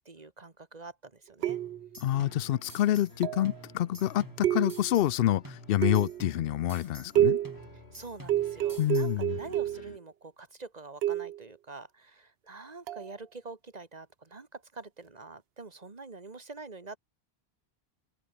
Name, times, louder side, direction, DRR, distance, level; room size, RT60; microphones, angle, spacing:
voice 1, 0.1-1.6 7.9-17.0, right 3 dB, 40° right, 1.8 m, -46 dB
sound 1, 1.4-2.0 3.2-3.6 4.4-5.0 5.8-6.3 7.2-7.6 8.3-9.9 11.0-11.4 12.9-13.1, right 12 dB, 75° right, 0.8 m, -29 dB
sound 2, 1.5-3.2 3.4-5.2 5.4-7.2 7.4-9.2, right 1 dB, 20° right, 3.1 m, -50 dB
voice 2, 2.0-7.4 8.8-9.4, left 12 dB, 70° left, 0.7 m, -27 dB
sound 3, 2.1-10.0, left 2 dB, 85° left, 4.0 m, -53 dB
open air
omnidirectional pair, 1.1 m